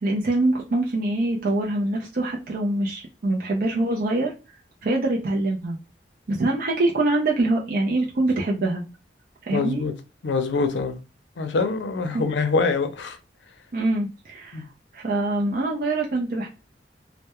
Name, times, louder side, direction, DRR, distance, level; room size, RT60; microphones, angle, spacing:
voice 1, 0.0-4.3 4.8-5.8 6.3-8.8 9.4-9.8 12.1-12.2 13.7-14.6 14.9-16.5, right 2 dB, 55° right, 0.4 m, -24 dB
voice 2, 9.5-9.9 10.2-11.0 11.4-13.2 14.5-14.6, left 4 dB, 85° left, 0.5 m, -24 dB
2.2 x 2.0 x 2.8 m
head